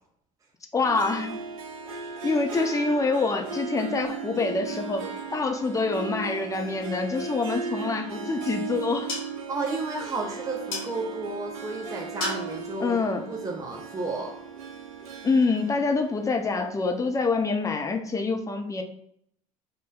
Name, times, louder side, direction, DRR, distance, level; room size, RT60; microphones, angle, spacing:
voice 1, 0.7-1.3 2.2-9.1 12.8-13.3 15.2-18.8, left 3 dB, 20° left, 4 dB, 0.6 m, -26 dB
Harp, 0.8-17.3, right 5 dB, 75° right, 0.5 m, -37 dB
sound 1, 8.1-14.3, left 3 dB, 65° left, 1.1 m, -40 dB
voice 2, 9.5-13.0 13.3-14.3, right 3 dB, 20° right, 0 dB, 0.7 m, -32 dB
4.9 x 2.2 x 2.3 m, 0.69 s
hypercardioid pair, 65°, 18 cm